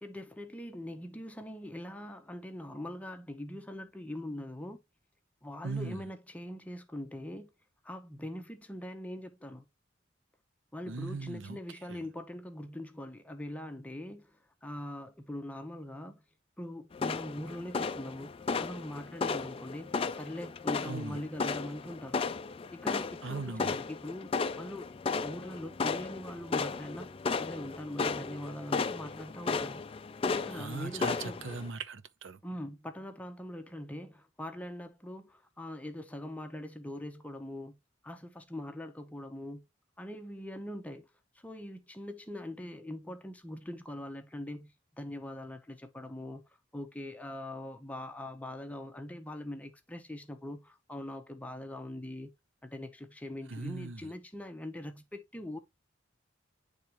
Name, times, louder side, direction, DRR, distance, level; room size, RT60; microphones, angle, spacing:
voice 1, 0.0-4.8 5.4-7.5 7.8-9.7 10.7-16.2 16.6-22.2 22.7-27.1 27.4-29.8 30.2-31.4 32.4-37.8 38.0-39.6 40.0-41.1 41.4-44.7 45.0-46.4 46.7-52.3 52.6-55.6, left 1 dB, 10° left, 0.7 m, -42 dB
voice 2, 5.6-6.1 10.9-11.6 11.9-12.0 20.8-21.2 23.2-23.7 30.6-32.4 53.5-54.1, right 4 dB, 90° right, 0.7 m, -39 dB
sound 1, 16.9-31.7, left 4 dB, 30° left, 0.3 m, -35 dB
10.0 x 3.5 x 2.9 m
head